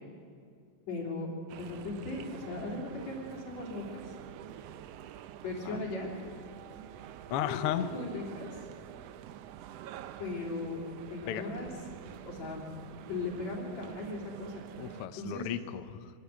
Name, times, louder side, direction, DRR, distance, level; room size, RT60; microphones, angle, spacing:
voice 1, 0.9-1.3 1.6-4.1 5.4-6.1 7.4-8.5 10.2-10.8 11.1-11.7 12.2-12.7 13.1-14.6 15.1-15.5, left 3 dB, 55° left, -1 dB, 4.6 m, -38 dB
sound 1, 1.5-15.1, right 10 dB, 80° right, 1.4 m, -47 dB
voice 2, 7.3-7.9 11.3-11.5 14.8-16.1, left 10 dB, 80° left, 10 dB, 1.3 m, -34 dB
24.0 x 13.0 x 9.5 m, 2.2 s
omnidirectional pair, 3.7 m